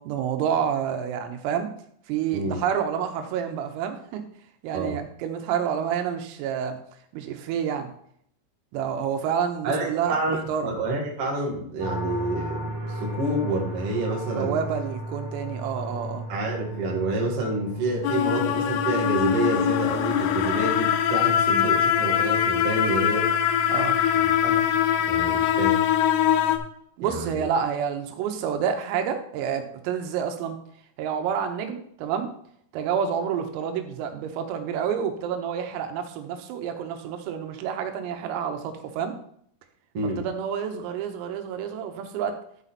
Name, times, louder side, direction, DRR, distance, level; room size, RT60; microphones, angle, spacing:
voice 1, 0.0-1.7 2.1-4.2 4.6-6.8 7.1-7.9 8.7-10.7 14.4-16.3 23.7-24.0 27.0-30.6 31.0-32.3 32.7-39.2 40.2-42.4, right 8 dB, 90° right, 6 dB, 3.7 m, -28 dB
voice 2, 9.6-14.6 15.7-15.8 16.3-23.3 23.9-24.6 25.1-25.8 27.0-27.5 39.9-40.2, right 2 dB, 50° right, -1 dB, 1.7 m, -28 dB
sound 1, 11.8-26.6, right 1 dB, 30° right, 3.2 m, -37 dB
sound 2, 18.0-26.6, left 10 dB, 90° left, 3.4 m, -22 dB
12.5 x 5.0 x 4.2 m, 0.66 s
omnidirectional pair, 5.9 m